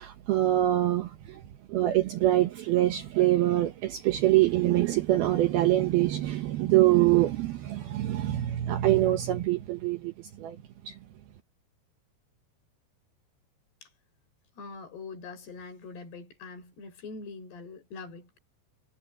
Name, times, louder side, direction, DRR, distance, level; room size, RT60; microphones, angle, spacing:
voice 1, 0.0-1.4 1.7-10.6 10.8-11.0, right 15 dB, 70° right, 2.5 m, -24 dB
voice 2, 14.5-18.4, left 4 dB, 60° left, 6.5 m, -43 dB
omnidirectional pair, 5.4 m